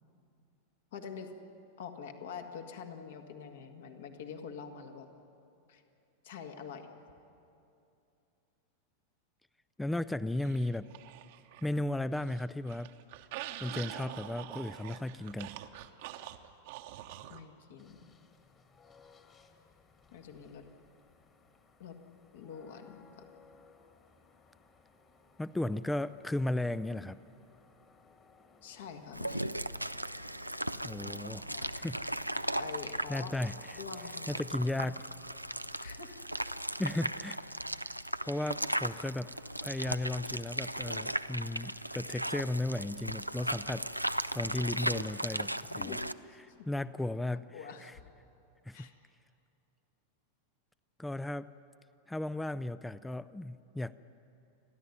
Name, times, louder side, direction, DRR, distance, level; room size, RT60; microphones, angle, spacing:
voice 1, 0.9-1.3 1.8-5.1 5.7-5.8 6.2-6.9 17.3-18.2 20.1-20.6 21.8-22.0 22.3-23.1 28.6-29.5 31.4-31.7 32.5-33.4 33.7-35.0 35.8-36.2 45.3-46.7 47.3-47.9 48.7-48.9, left 6 dB, 55° left, 5 dB, 1.9 m, -46 dB
voice 2, 9.8-10.9 11.6-12.9 13.6-15.5 25.4-27.2 30.8-32.1 33.1-33.8 34.3-35.1 36.8-37.4 38.2-39.3 39.6-46.0 46.4-48.0 48.7-48.9 51.0-51.5 52.1-53.9, left 1 dB, 5° left, 16 dB, 0.4 m, -35 dB
sound 1, 10.4-11.8 12.1-17.4, right 13 dB, 50° right, 1.0 m, -45 dB
sound 2, 17.8-33.9, left 4 dB, 25° left, 1.9 m, -63 dB
sound 3, 29.1-46.1, right 1 dB, 90° right, 0.4 m, -37 dB
29.5 x 11.5 x 9.6 m, 2.7 s
figure-of-eight pair, 90°, 0 cm